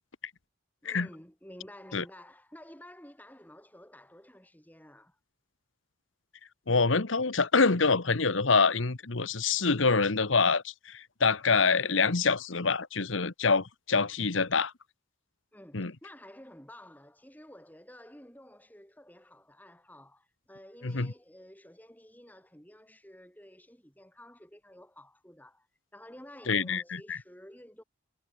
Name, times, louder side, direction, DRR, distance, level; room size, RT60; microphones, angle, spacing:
voice 1, 0.8-5.2 15.5-25.7 25.9-27.8, left 1 dB, 10° left, 4.6 m, -52 dB
voice 2, 6.7-14.7 15.7-15.9 20.8-21.1 26.5-27.2, left 4 dB, 75° left, 1.3 m, -26 dB
head